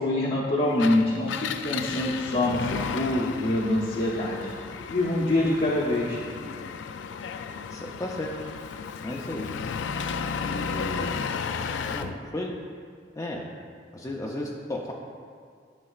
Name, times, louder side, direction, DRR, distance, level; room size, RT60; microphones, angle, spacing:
voice 1, 0.0-4.5 4.9-6.2, left 1 dB, 50° left, -6 dB, 0.8 m, -25 dB
Engine, 0.7-12.2, left 6 dB, 90° left, 0.3 m, -34 dB
voice 2, 7.7-8.3 9.0-9.5 10.4-11.1 11.9-12.5 13.2-13.4 13.9-14.9, left 1 dB, 20° left, -2 dB, 0.5 m, -34 dB
11.5 x 5.4 x 2.4 m, 2.1 s
head